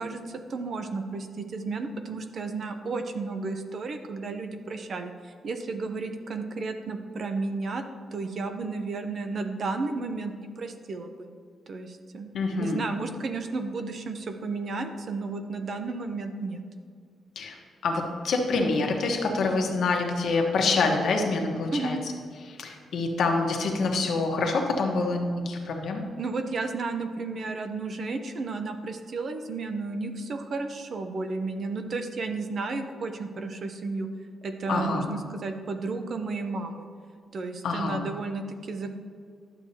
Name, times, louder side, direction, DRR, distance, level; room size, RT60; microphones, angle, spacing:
voice 1, 0.0-7.8 8.1-11.3 11.7-12.3 12.6-16.6 21.7-22.0 26.2-34.1 34.4-36.9 37.3-38.9, right 3 dB, 45° right, 7 dB, 0.6 m, -33 dB
voice 2, 12.3-12.8 17.4-17.6 17.8-22.0 22.5-26.0 34.7-35.1 37.6-38.0, left 3 dB, 65° left, 2 dB, 1.2 m, -26 dB
11.5 x 7.1 x 2.8 m, 2.1 s
wide cardioid pair, 165°, 0 cm